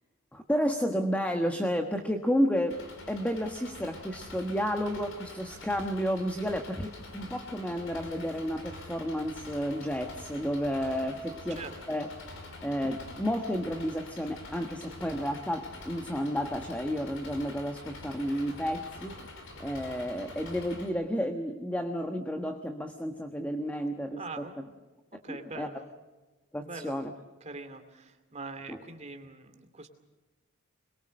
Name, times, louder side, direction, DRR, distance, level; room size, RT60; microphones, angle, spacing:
voice 1, 0.3-2.8 3.1-11.6 11.9-12.1 12.6-19.2 19.6-24.4 25.3-25.7 26.5-27.1, equal, 5° left, 5 dB, 1.3 m, -31 dB
Engine, 2.7-20.9, left 2 dB, 60° left, 5.1 m, -46 dB
voice 2, 11.0-11.8 24.1-24.6 25.2-25.9 26.6-26.9 27.4-29.9, right 3 dB, 30° right, 7 dB, 2.5 m, -43 dB
23.0 x 22.5 x 6.5 m, 1.2 s
head